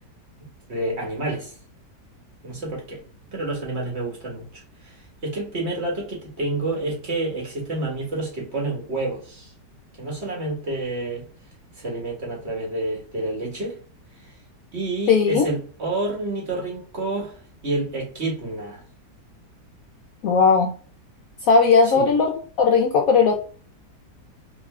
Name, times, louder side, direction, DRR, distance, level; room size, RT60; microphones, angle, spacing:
voice 1, 0.7-1.5 2.4-3.0 3.3-5.0 5.2-9.5 10.0-11.2 11.8-13.8 14.7-17.3 17.6-18.8 21.8-22.2, right 2 dB, 40° right, 1.5 m, -29 dB
voice 2, 15.1-15.5 20.2-20.7 21.5-23.3, left 5 dB, 70° left, 0.8 m, -17 dB
3.6 x 2.9 x 3.2 m
omnidirectional pair, 1.8 m